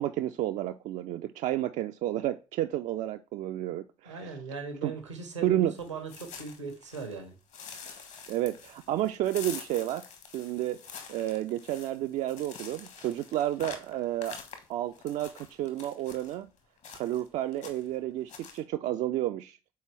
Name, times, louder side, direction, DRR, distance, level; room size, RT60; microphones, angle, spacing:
voice 1, 0.0-4.3 4.8-4.9 5.4-5.8 8.3-10.1 10.3-10.8 11.1-14.4 14.7-16.5 16.9-19.6, right 13 dB, 55° right, 0.4 m, -31 dB
voice 2, 4.0-7.3, right 4 dB, 85° right, 1.0 m, -39 dB
sound 1, 5.8-7.2 7.5-16.3 16.8-17.3 17.5-18.0 18.3-18.6, left 6 dB, 50° left, 1.3 m, -46 dB
6.8 x 4.3 x 3.3 m
figure-of-eight pair, 45°, 15 cm